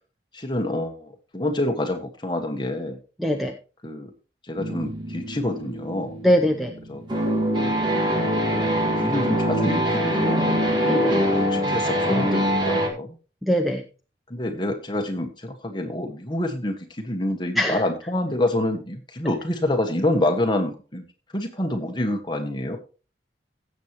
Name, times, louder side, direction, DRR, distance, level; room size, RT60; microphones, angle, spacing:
voice 1, 0.3-3.0 3.8-4.1 4.5-6.1 6.9-7.0 7.8-8.0 8.5-8.7 9.0-13.2 14.3-21.0 21.3-22.8, left 1 dB, 25° left, 4 dB, 1.6 m, -27 dB
voice 2, 3.2-3.5 6.2-6.7 10.9-11.1 13.4-13.8 17.6-17.8, equal, ahead, 4 dB, 0.7 m, -21 dB
sound 1, 4.6-12.9, equal, 25° right, 2.1 m, -24 dB
16.5 x 7.5 x 3.0 m, 0.34 s
head